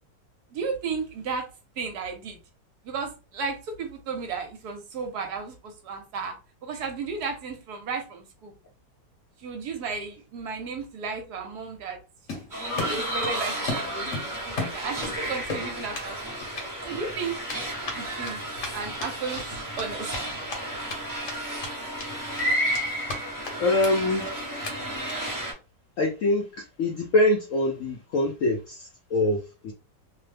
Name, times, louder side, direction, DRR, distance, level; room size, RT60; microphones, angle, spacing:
voice 1, 0.5-1.5 1.8-2.4 2.8-6.3 6.6-8.5 9.4-12.0 12.3-16.2 16.8-17.4 17.9-18.4 18.7-19.4 19.8-20.5 24.2-24.3, right 5 dB, 70° right, 1.1 m, -34 dB
Run, 12.3-13.4 13.7-15.2 15.5-16.1 16.4-16.6 17.5-21.0 21.3-21.4 21.6-22.1 22.4-23.2 23.4-23.5 23.8-23.9 24.2-24.3 24.6-24.7 25.1-25.3, left 3 dB, 55° left, 1.0 m, -34 dB
sound 1, 12.5-25.5, equal, 25° right, 0.4 m, -32 dB
voice 2, 23.6-24.3 26.0-29.7, left 2 dB, 75° left, 0.7 m, -24 dB
2.9 x 2.0 x 3.2 m
omnidirectional pair, 1.9 m